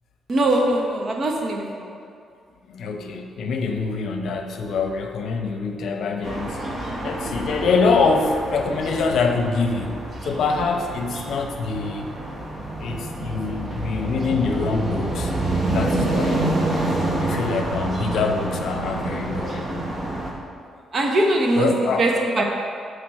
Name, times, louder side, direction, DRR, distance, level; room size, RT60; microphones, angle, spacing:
voice 1, 0.3-1.9 20.9-22.4, right 1 dB, 45° right, 1 dB, 1.1 m, -21 dB
voice 2, 2.7-6.6 7.0-12.1 12.8-15.3 15.7-16.8 17.2-19.7 21.5-22.1, left 4 dB, 70° left, 4 dB, 0.7 m, -25 dB
sound 1, 6.2-20.3, right 2 dB, 25° right, 1.2 m, -27 dB
7.7 x 5.2 x 4.2 m, 2.3 s
cardioid pair, 90°, 0 cm